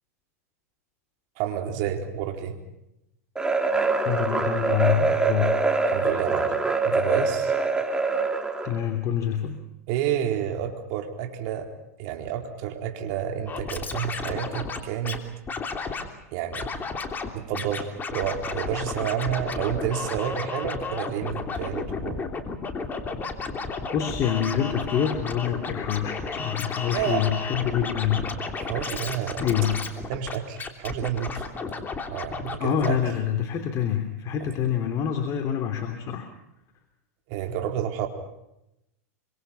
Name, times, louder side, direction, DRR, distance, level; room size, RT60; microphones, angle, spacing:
voice 1, 1.4-2.6 5.9-6.6 6.8-7.5 9.9-11.7 12.0-15.2 16.3-16.7 17.3-22.3 26.9-27.2 28.6-29.5 30.1-31.4 32.1-33.0 34.4-34.5 37.3-38.1, right 10 dB, 55° right, 4 dB, 4.1 m, -30 dB
sound 1, 3.4-8.8, right 3 dB, 10° right, 3.0 m, -24 dB
voice 2, 4.0-5.6 8.6-9.6 23.9-28.3 29.4-29.8 32.6-36.3, left 9 dB, 40° left, 6 dB, 3.0 m, -26 dB
Scratching (performance technique), 13.5-15.2 15.5-16.1 16.5-17.3 17.5-32.6 32.8-32.9, left 4 dB, 20° left, 3.2 m, -33 dB
26.0 x 25.0 x 5.8 m, 0.86 s
hypercardioid pair, 110°, 9 cm